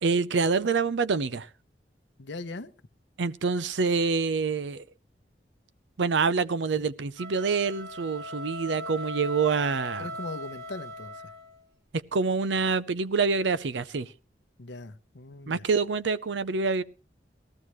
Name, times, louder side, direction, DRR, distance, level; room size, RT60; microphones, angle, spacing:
voice 1, 0.0-1.5 3.2-4.8 6.0-10.1 12.1-14.1 15.5-16.8, right 4 dB, 90° right, 0.6 m, -26 dB
voice 2, 2.2-2.7 10.0-11.2 14.6-15.6, left 3 dB, 90° left, 0.9 m, -40 dB
sound 1, 7.1-11.6, equal, 65° right, 1.5 m, -39 dB
18.5 x 14.0 x 3.1 m
head